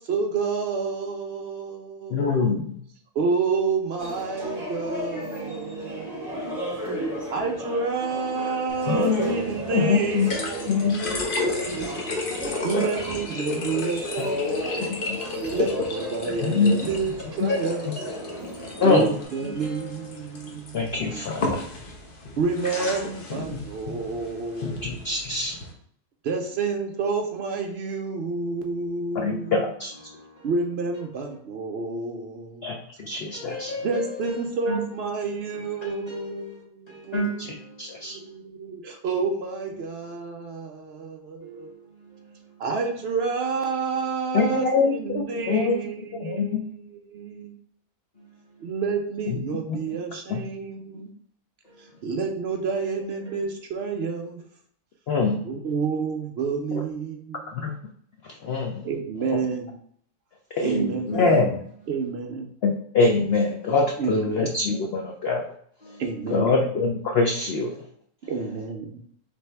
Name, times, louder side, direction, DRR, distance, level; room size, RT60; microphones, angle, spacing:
voice 1, 0.0-2.6 3.1-6.6 7.3-11.8 12.6-15.0 15.5-17.9 18.8-21.2 22.4-24.9 26.2-29.6 30.4-32.6 33.8-37.3 38.0-41.7 42.6-47.6 48.6-51.1 51.8-54.4 55.4-57.7 58.8-59.8 60.6-61.2 61.9-62.5 64.0-64.5 66.0-66.7 68.3-69.0, right 4 dB, 70° right, 0.6 m, -29 dB
voice 2, 2.1-2.8 8.9-9.4 9.7-10.3 10.7-11.2 13.6-13.7 15.1-15.2 16.4-16.7 17.4-17.5 18.8-19.1 20.7-21.5 25.0-25.6 29.1-29.9 32.6-33.7 37.8-38.2 44.3-45.8 46.2-46.6 49.3-49.4 49.7-49.8 50.3-50.4 55.1-55.4 56.7-56.8 57.5-57.7 58.4-58.8 60.5-60.7 61.1-61.4 62.6-65.4 66.3-67.7, left 4 dB, 75° left, 0.5 m, -23 dB
sound 1, 4.0-19.2, equal, 15° right, 1.1 m, -34 dB
voice 3, 5.1-7.3 10.5-10.8 15.5-16.3 17.5-18.9 19.4-20.5 30.1-30.5 33.3-34.8 35.5-36.6 36.9-38.0 41.4-42.4 48.2-48.3 51.6-51.8 52.7-52.9 60.6-61.6 63.3-63.4 65.8-66.0, equal, 25° left, 1.9 m, -35 dB
sound 2, 8.7-25.7, left 3 dB, 45° left, 0.8 m, -33 dB
4.3 x 3.4 x 3.2 m
omnidirectional pair, 1.6 m